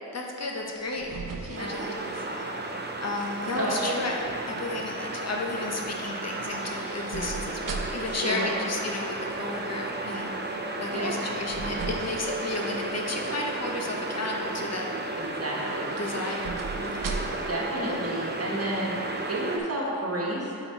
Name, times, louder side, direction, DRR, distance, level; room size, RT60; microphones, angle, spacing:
voice 1, 0.1-1.1 1.4-2.7 3.0-14.8 16.0-17.1, left 2 dB, 50° left, 0 dB, 0.8 m, -33 dB
sound 1, 0.6-3.0 3.3-3.9 6.1-8.2 11.0-13.1 13.5-14.0 15.5-17.6 17.8-17.9, right 4 dB, 70° right, 0.7 m, -39 dB
sound 2, 1.5-19.6, right 2 dB, 30° right, 0.6 m, -34 dB
voice 2, 3.5-4.0 8.0-8.5 10.9-11.2 15.2-15.9 16.9-17.1 17.5-19.0 19.2-20.5, right 1 dB, 45° right, -4 dB, 1.3 m, -31 dB
8.1 x 4.1 x 4.4 m, 2.7 s
wide cardioid pair, 110°, 33 cm